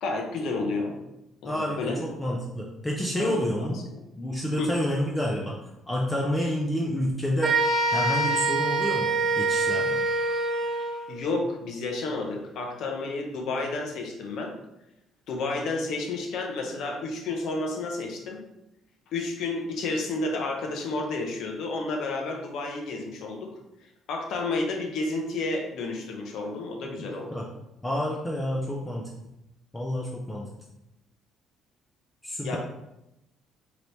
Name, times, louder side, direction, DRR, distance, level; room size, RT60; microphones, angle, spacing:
voice 1, 0.0-1.0 1.4-2.0 3.2-3.7 4.6-4.7 11.1-14.5 15.3-18.4 19.1-23.5 24.1-27.3 32.4-32.6, left 3 dB, 65° left, 2 dB, 0.8 m, -31 dB
voice 2, 1.4-3.8 4.2-5.6 5.9-7.6 7.9-10.0 27.3-27.4 27.8-29.0 29.7-30.5 32.2-32.6, equal, 10° left, -2 dB, 0.4 m, -29 dB
sound 1, 7.4-11.1, right 3 dB, 25° right, 0.8 m, -25 dB
4.0 x 3.0 x 3.3 m, 0.88 s
cardioid pair, 160°, 0 cm